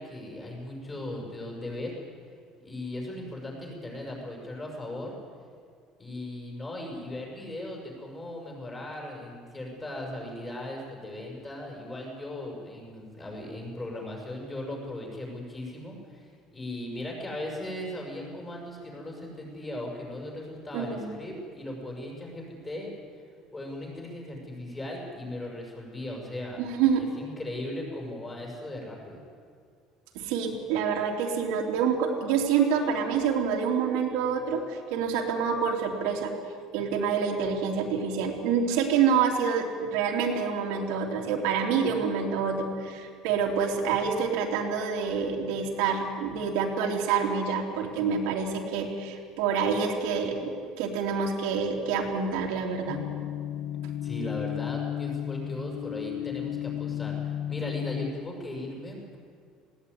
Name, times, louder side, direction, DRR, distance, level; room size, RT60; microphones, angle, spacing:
voice 1, 0.0-1.9 2.6-5.1 6.0-22.9 23.5-26.6 26.9-29.2 54.0-59.2, left 1 dB, 15° left, -1 dB, 6.2 m, -38 dB
voice 2, 20.7-21.2 26.6-27.1 30.2-36.3 36.7-50.5 50.8-53.0, right 6 dB, 85° right, 0 dB, 3.5 m, -27 dB
sound 1, 52.9-58.1, left 10 dB, 75° left, 1.1 m, -33 dB
20.0 x 17.5 x 9.7 m, 2.1 s
cardioid pair, 160°, 0 cm